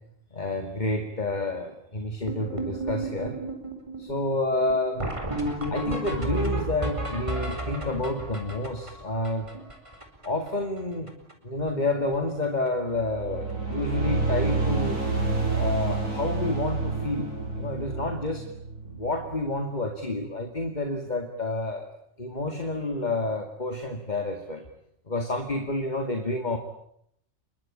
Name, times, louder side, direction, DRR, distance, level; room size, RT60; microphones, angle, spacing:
voice 1, 0.3-3.4 4.0-5.1 5.7-9.5 10.2-11.1 11.4-15.0 15.5-18.4 18.8-21.9 22.2-24.7 25.1-26.6, left 2 dB, 35° left, 6 dB, 2.3 m, -29 dB
sound 1, 2.3-10.5 10.8-10.9 11.1-11.3 11.6-12.1 12.4-12.7 13.5-13.6 14.0-14.1 14.4-14.6 16.8-16.9 19.2-19.3, right 1 dB, 25° right, 4.7 m, -33 dB
sound 2, 12.9-19.5, right 3 dB, 90° right, 5.9 m, -29 dB
27.5 x 22.5 x 8.7 m, 0.74 s
omnidirectional pair, 1.4 m